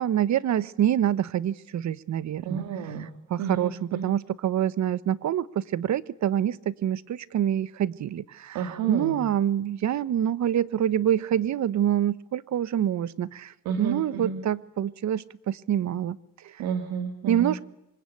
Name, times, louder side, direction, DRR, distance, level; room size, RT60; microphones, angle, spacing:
voice 1, 0.0-2.6 3.0-16.2 16.4-16.6 17.3-17.6, right 10 dB, 50° right, 18 dB, 1.0 m, -26 dB
voice 2, 2.4-3.1 3.4-4.1 8.5-9.2 13.7-14.4 16.6-17.5, right 7 dB, 80° right, 6 dB, 2.1 m, -31 dB
26.5 x 24.5 x 8.5 m, 0.86 s
cardioid pair, 115°, 36 cm